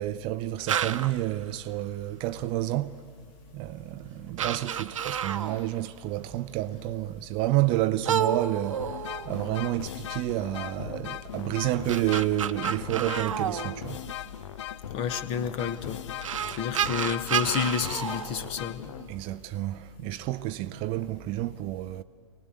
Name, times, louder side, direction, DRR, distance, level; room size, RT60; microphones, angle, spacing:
voice 1, 0.0-2.9 3.5-14.0 16.5-16.7 19.1-22.0, right 15 dB, 30° right, 0.5 m, -30 dB
sound 1, 0.7-1.2 3.3-3.4 4.0-4.1 4.4-5.7 8.1-9.7 11.6-14.3 15.7-15.8 16.2-19.1, right 8 dB, 70° right, 0.9 m, -30 dB
sound 2, 8.7-19.4, left 11 dB, 60° left, 0.8 m, -39 dB
voice 2, 14.9-16.0 16.6-18.9, left 7 dB, 35° left, 1.3 m, -30 dB
24.5 x 19.5 x 8.5 m
hypercardioid pair, 120°, 17 cm